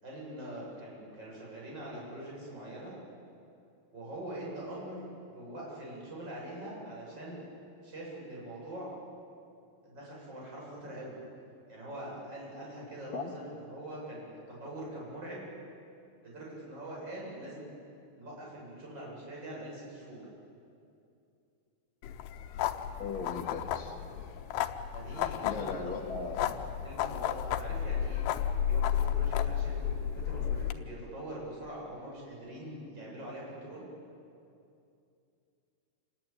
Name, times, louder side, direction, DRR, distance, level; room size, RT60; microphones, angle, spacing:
voice 1, 0.0-3.0 3.9-7.4 7.8-8.9 9.8-11.2 11.7-15.5 16.2-17.7 18.1-20.2 24.9-26.3 26.8-33.9, right 1 dB, 25° right, -4 dB, 8.1 m, -43 dB
sound 1, 22.0-30.7, left 9 dB, 90° left, 3.1 m, -32 dB
voice 2, 23.0-24.0 25.4-26.5, left 4 dB, 40° left, 1 dB, 2.1 m, -38 dB
28.0 x 20.5 x 8.9 m, 2.6 s
omnidirectional pair, 4.7 m